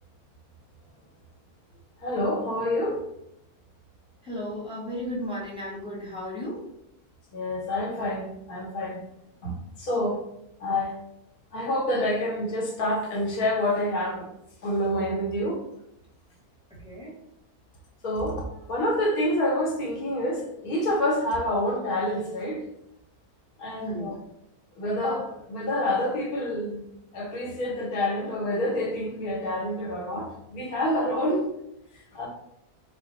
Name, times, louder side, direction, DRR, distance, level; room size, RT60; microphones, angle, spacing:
voice 1, 2.0-3.0 7.3-9.0 9.4-10.2 10.6-11.0 11.5-14.3 14.6-15.6 18.0-22.6 23.6-24.2 24.8-26.8 27.1-31.5 32.1-32.3, left 1 dB, 70° left, -1 dB, 1.5 m, -27 dB
voice 2, 4.2-6.6 16.7-17.1 23.8-24.1, left 1 dB, 5° right, -6 dB, 1.2 m, -34 dB
4.1 x 2.2 x 3.9 m, 0.78 s
omnidirectional pair, 1.6 m